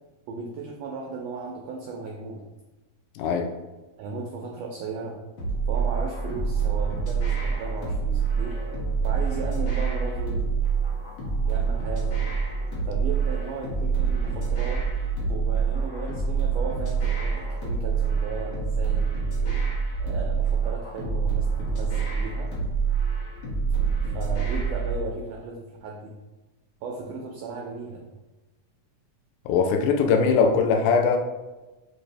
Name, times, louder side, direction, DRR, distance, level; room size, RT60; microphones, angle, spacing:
voice 1, 0.3-2.4 4.0-5.2 5.7-8.6 9.0-10.6 11.5-12.3 12.9-14.8 15.3-19.1 20.0-22.5 24.1-26.1 26.8-28.0, right 4 dB, 85° right, 0 dB, 1.5 m, -36 dB
voice 2, 3.2-3.5 29.5-31.2, left 5 dB, 85° left, 4 dB, 2.0 m, -21 dB
sound 1, 5.4-25.0, right 5 dB, 65° left, 1.0 m, -26 dB
6.3 x 2.6 x 3.2 m, 1.1 s
omnidirectional pair, 3.6 m